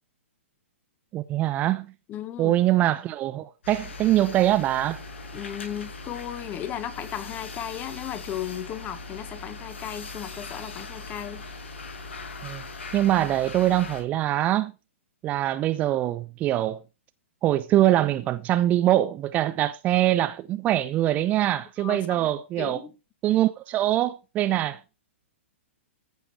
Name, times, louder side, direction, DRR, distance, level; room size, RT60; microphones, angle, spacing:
voice 1, 1.1-1.9 2.4-5.0 12.4-12.6 12.9-14.7 15.2-16.8 17.4-22.8 23.2-24.8, right 13 dB, 20° right, 0.6 m, -23 dB
voice 2, 2.1-2.6 5.3-11.4 21.8-22.3 22.6-22.9, left 10 dB, 20° left, 1.5 m, -35 dB
sound 1, 3.6-14.0, left 3 dB, 60° left, 6.3 m, -40 dB
15.0 x 7.2 x 4.7 m
figure-of-eight pair, 115°, 7 cm